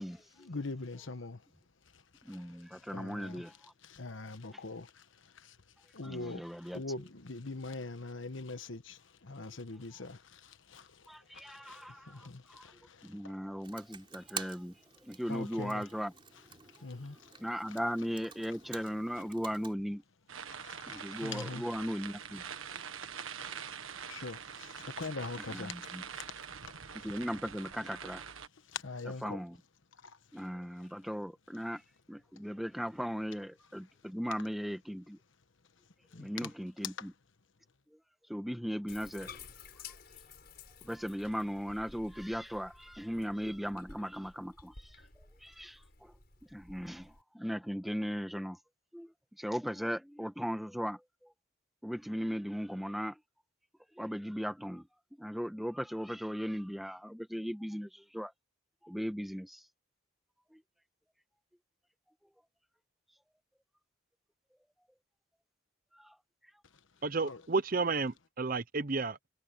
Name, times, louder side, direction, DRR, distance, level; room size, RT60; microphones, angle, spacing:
voice 1, 0.4-1.4 2.3-2.5 2.9-3.4 3.8-5.0 5.3-5.6 5.9-6.4 6.7-11.1 11.3-13.3 15.3-15.8 16.8-17.3 20.6-21.6 24.1-26.2 26.6-26.7 28.7-29.4 30.0-30.2 36.1-36.5 37.0-37.1 67.2-67.4, left 3 dB, 70° left, 1.2 m, -43 dB
voice 2, 2.2-3.5 6.0-6.8 11.1-12.7 13.0-14.8 15.0-16.1 17.4-20.0 20.9-22.4 25.4-26.0 27.0-28.3 29.2-29.6 30.3-31.8 32.1-35.2 36.2-37.1 38.3-39.3 40.8-46.1 46.5-48.6 48.9-49.1 49.4-51.0 51.8-53.2 54.0-54.8 55.2-58.3 58.8-59.6 60.5-60.6 66.0-66.1, equal, ahead, 1.7 m, -38 dB
Computer keyboard, 13.6-19.8, right 6 dB, 25° right, 3.6 m, -48 dB
sound 1, 20.3-28.5, right 7 dB, 85° right, 1.6 m, -44 dB
Bathtub (filling or washing), 38.9-47.2, left 5 dB, 50° left, 6.3 m, -53 dB
voice 3, 67.0-69.2, right 4 dB, 45° right, 0.7 m, -31 dB
head